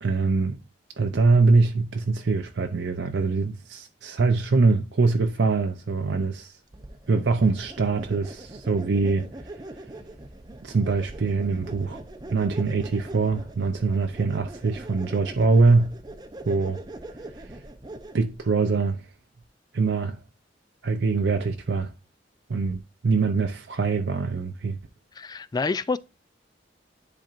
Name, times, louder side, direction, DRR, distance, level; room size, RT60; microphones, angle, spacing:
voice 1, 0.0-0.6 1.0-6.5 7.1-9.3 10.6-12.0 12.3-15.9 16.5-16.8 18.1-19.0 19.7-20.2 20.8-21.9 22.5-24.8, right 4 dB, 70° right, 0.6 m, -23 dB
sound 1, 6.7-18.4, right 1 dB, 25° right, 0.6 m, -42 dB
voice 2, 25.2-26.0, left 4 dB, 20° left, 0.3 m, -27 dB
10.5 x 4.2 x 2.5 m
head